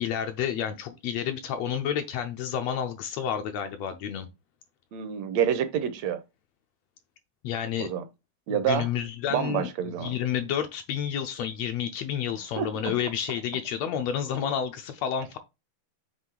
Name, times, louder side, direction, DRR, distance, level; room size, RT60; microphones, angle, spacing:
voice 1, 0.0-4.3 7.4-7.9 8.5-9.7 10.0-15.4, left 9 dB, 80° left, 1.6 m, -30 dB
voice 2, 4.9-6.2 7.8-8.0 8.5-8.9 9.3-10.2 12.6-12.9, right 9 dB, 75° right, 1.8 m, -28 dB
7.7 x 3.1 x 4.6 m
omnidirectional pair, 3.4 m